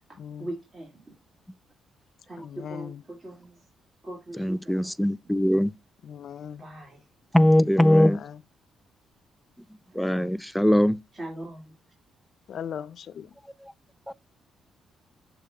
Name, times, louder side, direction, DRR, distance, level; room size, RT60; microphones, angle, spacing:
voice 1, 0.4-1.0 2.3-3.6 4.0-4.9 6.6-7.0 9.9-10.0 11.1-11.7, right 1 dB, 20° right, 2.5 m, -40 dB
voice 2, 2.4-3.0 6.1-6.6 12.5-13.3, left 8 dB, 60° left, 0.5 m, -37 dB
voice 3, 4.4-5.7 7.3-8.2 10.0-11.0 14.1-14.2, left 1 dB, 5° left, 0.3 m, -21 dB
6.8 x 3.1 x 5.0 m
cardioid pair, 90°, 0 cm